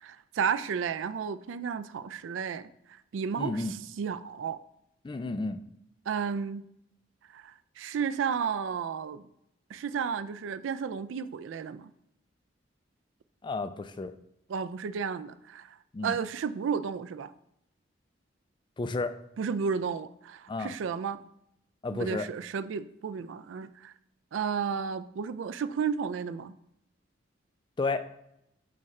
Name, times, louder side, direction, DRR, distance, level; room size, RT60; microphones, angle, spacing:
voice 1, 0.0-2.7 3.1-3.6 4.0-4.6 6.1-6.6 7.3-9.2 9.7-11.9 14.5-15.8 16.0-17.3 19.4-21.2 21.9-23.9 24.3-26.5, right 6 dB, 85° right, 12 dB, 0.3 m, -32 dB
voice 2, 3.4-3.7 5.0-5.6 13.4-14.1 15.9-16.2 18.8-19.2 20.5-20.7 21.8-22.3 27.8-28.1, left 3 dB, 25° left, 10 dB, 0.3 m, -32 dB
8.6 x 3.2 x 3.6 m, 0.79 s
head